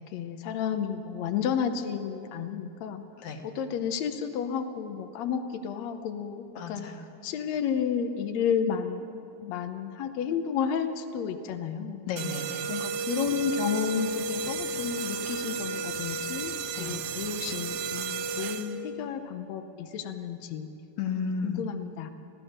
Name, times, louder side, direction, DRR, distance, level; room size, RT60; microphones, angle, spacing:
voice 1, 0.1-3.0 3.4-6.9 7.2-9.1 9.4-12.0 12.7-20.7 21.4-22.1, left 7 dB, 80° left, 6 dB, 1.5 m, -31 dB
voice 2, 6.6-7.0 12.1-12.7 16.8-16.9 21.0-21.6, left 5 dB, 60° left, 4 dB, 2.4 m, -33 dB
sound 1, 12.2-18.9, right 4 dB, 75° right, 2.3 m, -33 dB
25.5 x 15.5 x 6.5 m, 2.6 s
omnidirectional pair, 4.4 m